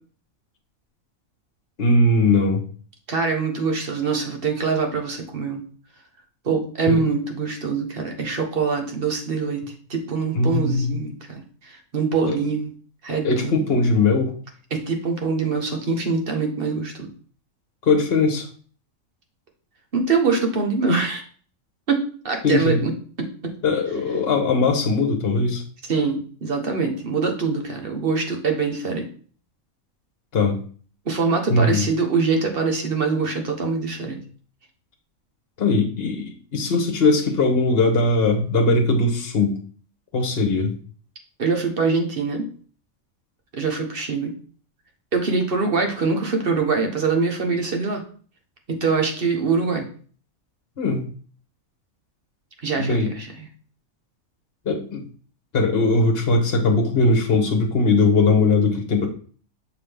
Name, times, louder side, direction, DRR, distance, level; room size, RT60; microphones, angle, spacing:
voice 1, 1.8-2.6 6.9-7.0 10.3-10.9 12.3-12.4 13.2-14.4 17.9-18.5 22.4-22.8 23.6-25.6 30.3-30.6 31.5-31.9 35.6-39.6 40.1-40.7 50.8-51.1 52.8-53.1 54.6-55.0 55.5-59.1, left 3 dB, 45° left, 3 dB, 1.3 m, -20 dB
voice 2, 3.1-5.6 6.4-9.6 9.9-12.7 13.0-13.8 14.7-17.1 19.9-21.2 21.9-22.9 23.4-23.5 25.9-29.0 31.0-34.2 41.4-42.4 43.5-44.3 45.1-48.0 48.7-49.9 52.6-53.3, right 4 dB, 45° right, 3 dB, 1.2 m, -24 dB
7.0 x 3.8 x 3.5 m, 0.43 s
omnidirectional pair, 1.5 m